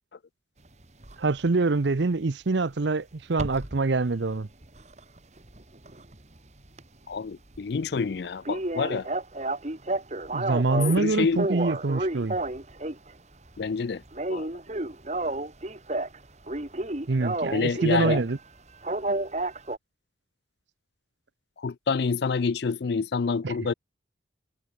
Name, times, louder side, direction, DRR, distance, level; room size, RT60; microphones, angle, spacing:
sound 1, 1.0-1.2 3.3-3.8 4.2-6.4 6.6-6.8 7.2-7.3 7.6-7.7 7.9-8.0 8.5-11.0 11.4-13.1 13.5-13.8 14.1-16.2 16.5-18.3 18.8-19.8, right 2 dB, 35° right, 1.9 m, -31 dB
voice 1, 1.2-4.5 10.3-12.4 17.1-18.4 23.4-23.5, right 3 dB, 70° right, 0.7 m, -25 dB
voice 2, 7.1-9.1 10.8-11.4 13.6-14.0 14.3-14.5 17.5-18.2 21.6-23.7, left 5 dB, 60° left, 0.4 m, -27 dB
head